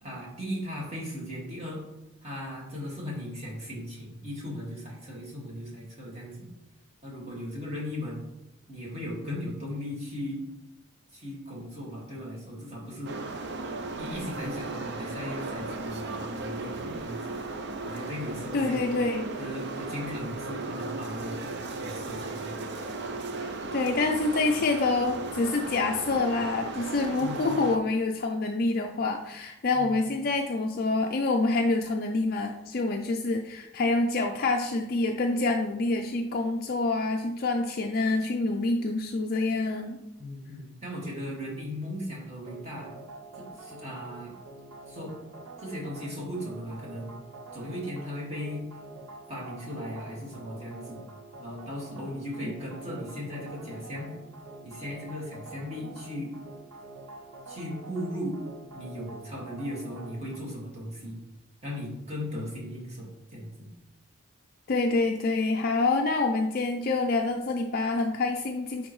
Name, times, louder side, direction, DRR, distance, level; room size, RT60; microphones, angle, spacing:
voice 1, 0.0-1.8 2.2-6.5 7.0-8.2 8.7-10.4 11.1-13.2 14.0-17.4 17.8-18.9 19.4-22.6 27.2-27.6 29.7-29.9 40.2-42.9 43.3-44.4 44.9-45.2 45.6-47.2 47.5-48.7 49.3-51.1 51.4-54.1 54.6-56.3 57.5-58.4 58.7-61.2 61.6-63.7, equal, 30° right, -4 dB, 2.0 m, -37 dB
sound 1, 13.0-27.8, right 3 dB, 50° right, 0.5 m, -36 dB
voice 2, 18.5-19.4 23.4-40.0 64.7-68.9, left 3 dB, 45° left, 2 dB, 0.4 m, -27 dB
sound 2, 42.5-60.4, right 2 dB, 90° right, 0.8 m, -46 dB
9.6 x 3.8 x 3.1 m, 0.91 s
head